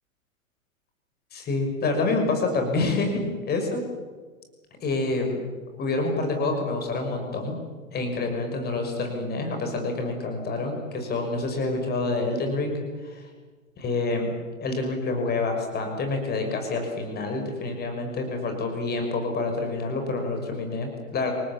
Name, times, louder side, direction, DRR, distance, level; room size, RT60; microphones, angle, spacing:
voice 1, 1.3-3.8 4.8-5.4 5.8-7.6 7.9-13.3 13.8-14.3 14.6-21.3, left 3 dB, 25° left, 4 dB, 6.1 m, -27 dB
28.0 x 18.5 x 8.9 m, 1.4 s
hypercardioid pair, 120°, 42 cm